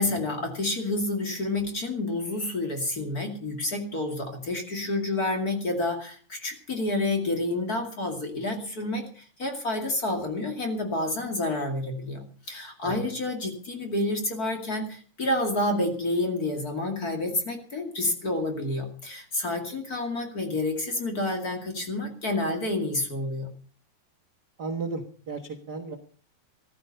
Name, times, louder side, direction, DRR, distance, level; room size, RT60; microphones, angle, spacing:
voice 1, 0.0-23.5, left 2 dB, 30° left, 4 dB, 2.3 m, -29 dB
voice 2, 24.6-26.0, right 3 dB, 60° right, 5 dB, 1.0 m, -34 dB
14.5 x 14.0 x 5.5 m, 0.41 s
omnidirectional pair, 4.1 m